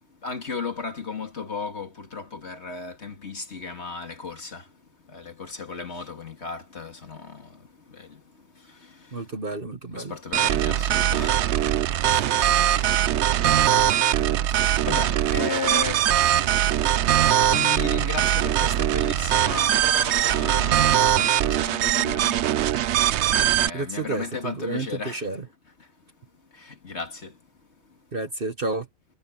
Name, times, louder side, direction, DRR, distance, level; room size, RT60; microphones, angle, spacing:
voice 1, 0.2-4.7 5.1-9.4 9.9-16.1 17.5-22.6 23.5-25.4 25.8-25.9 26.5-27.4, left 4 dB, 45° left, 2.4 m, -36 dB
voice 2, 9.1-10.1 12.1-12.2 23.7-25.4 28.1-28.9, right 3 dB, 40° right, 1.4 m, -31 dB
sound 1, 10.3-23.7, right 11 dB, 65° right, 0.7 m, -21 dB
omnidirectional pair, 1.6 m